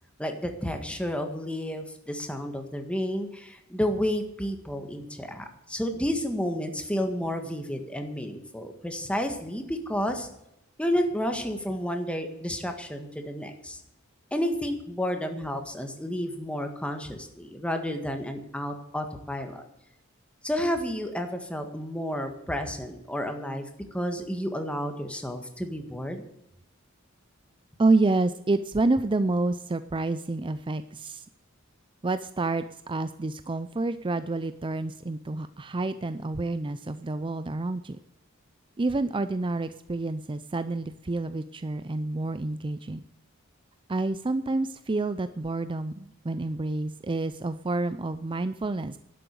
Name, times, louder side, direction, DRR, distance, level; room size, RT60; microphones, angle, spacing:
voice 1, 0.2-10.3 10.8-13.8 14.3-19.6 20.4-26.2, equal, 5° left, 5 dB, 1.7 m, -31 dB
voice 2, 27.8-31.2 32.0-38.0 38.8-43.0 43.9-49.0, right 2 dB, 25° right, 12 dB, 0.5 m, -28 dB
12.0 x 7.8 x 9.3 m, 0.79 s
head